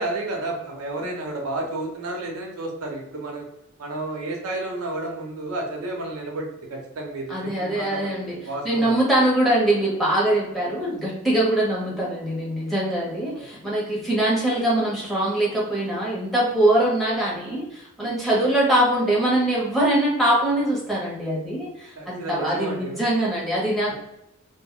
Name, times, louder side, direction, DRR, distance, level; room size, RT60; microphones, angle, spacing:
voice 1, 0.0-3.4 3.8-8.9 13.3-13.4 22.0-23.0 23.9-24.0, right 2 dB, 80° right, 0 dB, 0.7 m, -31 dB
voice 2, 7.3-23.9, right 1 dB, ahead, -6 dB, 0.8 m, -23 dB
2.2 x 2.0 x 3.6 m, 0.84 s
head